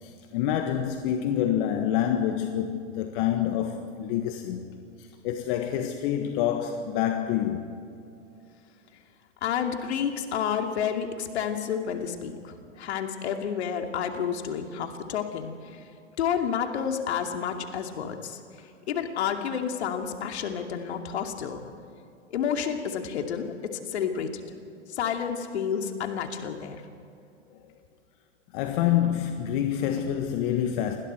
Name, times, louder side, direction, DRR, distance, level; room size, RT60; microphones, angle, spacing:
voice 1, 0.0-4.6 5.0-7.7 28.5-31.0, left 10 dB, 45° left, 1.6 m, -27 dB
voice 2, 9.4-15.8 16.2-18.4 18.9-21.6 22.3-24.4 24.9-26.8, left 8 dB, 60° left, 2.6 m, -30 dB
28.0 x 20.5 x 4.5 m
hypercardioid pair, 105°, 36 cm